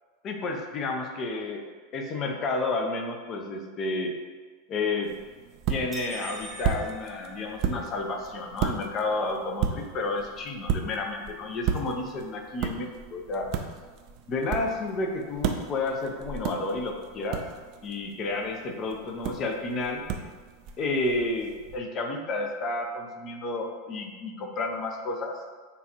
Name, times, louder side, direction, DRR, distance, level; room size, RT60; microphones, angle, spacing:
voice 1, 0.2-1.7 1.9-4.1 4.7-5.1 5.7-13.5 14.3-17.4 17.8-20.1 20.8-25.4, left 2 dB, 35° left, 3 dB, 0.7 m, -31 dB
sound 1, 5.0-21.8, right 7 dB, 50° right, 0.4 m, -35 dB
sound 2, 5.9-8.1, right 3 dB, 10° right, 0.8 m, -43 dB
6.8 x 2.5 x 2.9 m, 1.4 s
figure-of-eight pair, 85°, 0 cm